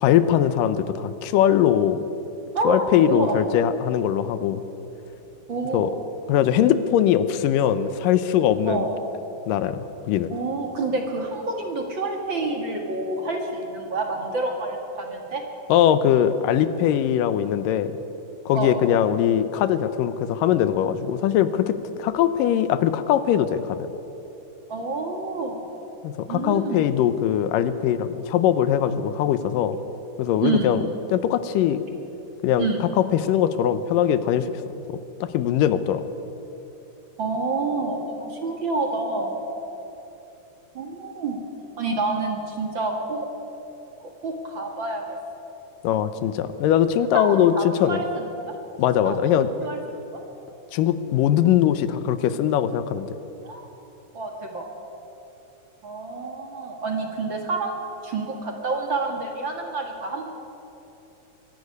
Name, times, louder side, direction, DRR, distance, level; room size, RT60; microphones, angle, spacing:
voice 1, 0.0-2.0 2.6-4.6 5.7-5.9 6.3-8.9 9.5-10.3 15.7-18.0 18.5-23.9 26.0-29.8 30.2-30.8 31.1-31.9 32.4-34.5 35.2-36.0 45.8-48.0 48.8-49.5 50.7-53.1, left 10 dB, 85° left, 12 dB, 2.5 m, -21 dB
voice 2, 2.5-3.5 5.5-5.9 8.7-8.9 10.3-15.4 18.5-18.8 24.7-25.7 26.3-26.9 30.4-30.7 32.6-32.8 37.2-39.4 40.7-41.4 41.8-43.3 44.0-45.2 47.1-48.6 49.0-49.2 49.6-49.8 53.4-53.6 54.1-54.6 55.8-60.3, right 3 dB, 40° right, 2 dB, 2.2 m, -28 dB
23.5 x 12.0 x 9.7 m, 3.0 s
omnidirectional pair, 3.8 m